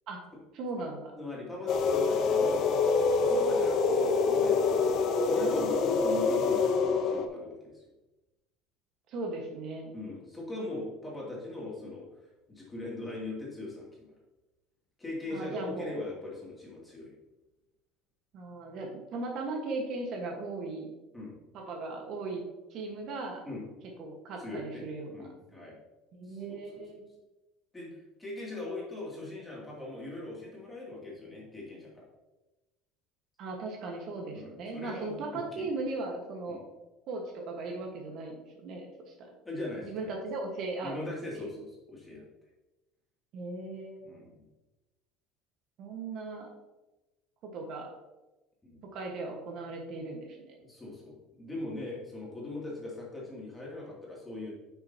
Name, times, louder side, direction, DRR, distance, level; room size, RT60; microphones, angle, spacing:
voice 1, 0.5-1.2 9.1-9.9 15.3-16.0 18.3-20.9 21.5-22.4 22.7-23.5 24.0-25.3 26.1-27.0 33.4-36.6 37.1-39.3 39.8-41.0 41.3-41.5 43.3-44.0 45.8-46.5 47.4-47.9 48.8-50.5, right 3 dB, 50° right, 1 dB, 1.4 m, -38 dB
voice 2, 1.2-2.7 3.2-7.8 9.9-12.1 12.5-14.1 15.0-17.1 21.1-21.4 23.4-23.6 24.4-24.8 25.1-25.8 26.3-26.8 27.7-27.9 28.2-32.0 34.3-35.7 36.5-36.6 39.4-40.1 40.8-42.2 44.0-44.4 48.6-48.8 50.6-54.5, left 2 dB, 10° left, -4 dB, 2.6 m, -40 dB
sound 1, 1.7-7.2, left 4 dB, 45° left, 0.8 m, -26 dB
9.9 x 5.9 x 2.9 m, 1.1 s
cardioid pair, 145°, 0 cm